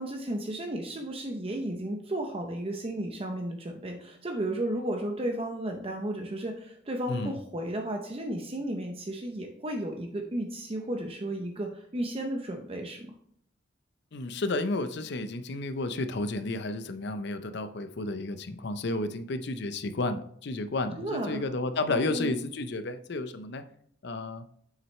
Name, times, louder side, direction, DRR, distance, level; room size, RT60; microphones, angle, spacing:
voice 1, 0.0-13.1 21.0-21.4 21.9-22.3, right 1 dB, 30° right, 3 dB, 0.7 m, -33 dB
voice 2, 7.1-7.4 14.1-23.6 24.0-24.4, left 2 dB, 65° left, 10 dB, 0.6 m, -32 dB
7.5 x 6.2 x 3.2 m, 0.65 s
head